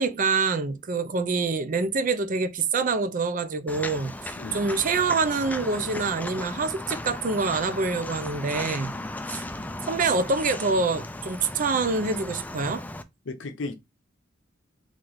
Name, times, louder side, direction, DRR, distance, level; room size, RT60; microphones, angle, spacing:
voice 1, 0.0-9.0 9.3-9.4 9.9-12.8, right 4 dB, 45° right, 0.5 m, -26 dB
Walk footsteps, 3.7-13.0, left 1 dB, 10° left, 0.3 m, -36 dB
voice 2, 13.3-13.7, left 3 dB, 75° left, 0.6 m, -34 dB
3.2 x 3.1 x 3.9 m
head